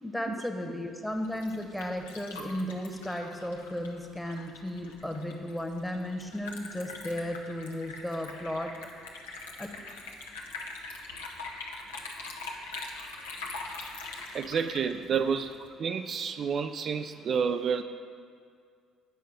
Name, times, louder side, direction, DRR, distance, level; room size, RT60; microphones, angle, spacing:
voice 1, 0.0-8.8 9.6-9.7, left 1 dB, 10° left, 4 dB, 1.1 m, -34 dB
Liquid, 1.1-15.7, left 3 dB, 90° left, 0.7 m, -42 dB
voice 2, 14.3-17.8, right 6 dB, 55° right, 7 dB, 0.3 m, -30 dB
9.0 x 5.5 x 5.1 m, 2.2 s
hypercardioid pair, 55°, 0 cm